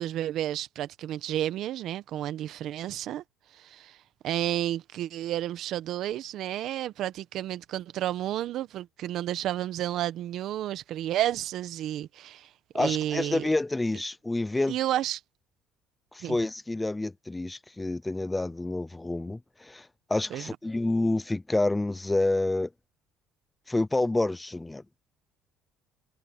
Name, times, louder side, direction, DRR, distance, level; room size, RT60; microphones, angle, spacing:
voice 1, 0.0-3.2 3.5-4.0 4.2-12.5 12.7-13.5 14.7-15.2 16.2-16.4 20.3-20.5, right 12 dB, 65° right, 1.3 m, -31 dB
voice 2, 12.7-14.8 16.1-22.7 23.7-24.8, left 2 dB, 10° left, 0.6 m, -28 dB
supercardioid pair, 90°, 0 cm